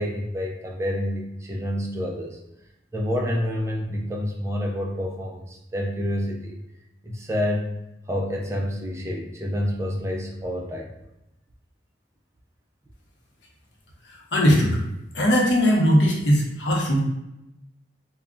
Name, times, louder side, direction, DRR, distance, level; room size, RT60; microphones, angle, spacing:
voice 1, 0.0-2.4 2.9-6.6 7.0-7.7 8.1-10.9, equal, 15° right, 0 dB, 0.3 m, -28 dB
voice 2, 14.0-14.8 15.1-17.0, equal, 75° left, -1 dB, 0.7 m, -20 dB
2.2 x 2.0 x 3.6 m, 0.89 s
head